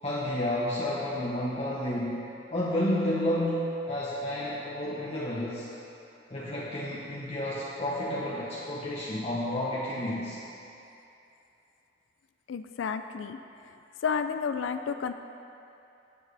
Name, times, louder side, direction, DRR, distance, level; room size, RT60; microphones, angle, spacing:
voice 1, 0.0-5.7 6.3-10.4, left 1 dB, 35° left, -7 dB, 1.0 m, -31 dB
voice 2, 12.5-13.4 14.0-15.1, left 6 dB, 90° left, 9 dB, 0.4 m, -31 dB
18.0 x 7.3 x 3.4 m, 2.8 s
head